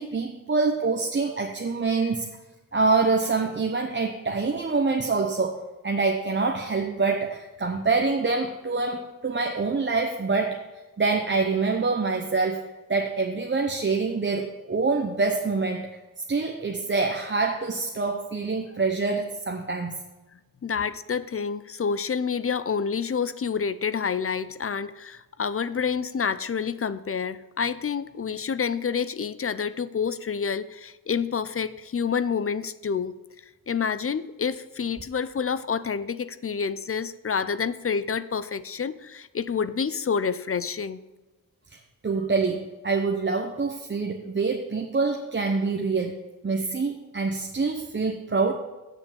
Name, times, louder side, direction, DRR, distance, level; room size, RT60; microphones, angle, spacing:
voice 1, 0.0-2.3 2.7-10.6 11.0-16.0 16.3-20.0 41.7-48.5, right 4 dB, 35° right, 2 dB, 0.8 m, -26 dB
voice 2, 20.6-33.2 33.7-41.0, left 6 dB, 40° left, 15 dB, 0.5 m, -28 dB
7.9 x 7.0 x 7.1 m, 1.1 s
wide cardioid pair, 105°, 35 cm